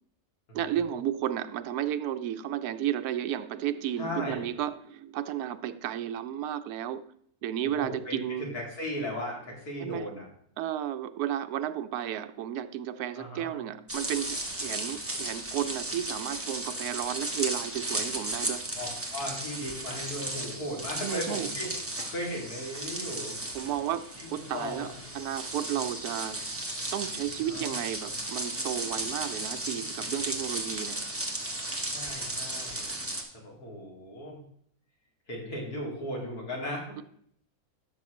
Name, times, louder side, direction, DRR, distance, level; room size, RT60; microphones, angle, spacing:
voice 1, 0.5-7.0 7.4-8.5 9.8-10.1 10.6-18.6 20.9-21.5 23.5-24.9 25.1-26.4 26.9-31.0, right 11 dB, 80° right, 10 dB, 1.1 m, -33 dB
voice 2, 4.0-4.5 7.8-10.3 13.1-13.5 18.8-21.7 22.1-23.4 24.2-24.9 27.5-27.7 31.9-33.0 33.3-34.4 35.3-37.0, left 1 dB, 80° left, -2 dB, 3.1 m, -37 dB
sound 1, 13.9-33.2, right 1 dB, 10° right, 1.0 m, -35 dB
12.0 x 6.0 x 3.1 m, 0.66 s
omnidirectional pair, 1.6 m